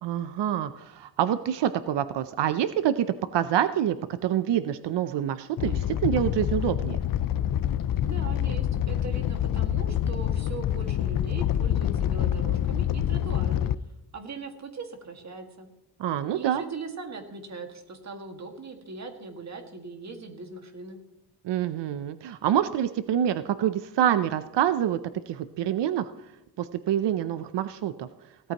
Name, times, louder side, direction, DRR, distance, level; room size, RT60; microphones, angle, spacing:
voice 1, 0.0-3.1 3.3-7.0 16.0-16.6 21.4-25.0 25.3-26.1 26.6-28.1, right 10 dB, 85° right, 11 dB, 0.7 m, -26 dB
Animal, 5.6-13.7, left 11 dB, 55° left, 0.5 m, -26 dB
voice 2, 8.0-13.7 14.1-15.7 16.3-21.0, right 4 dB, 40° right, 4 dB, 2.0 m, -40 dB
17.0 x 13.5 x 3.0 m, 0.95 s
wide cardioid pair, 150°, 41 cm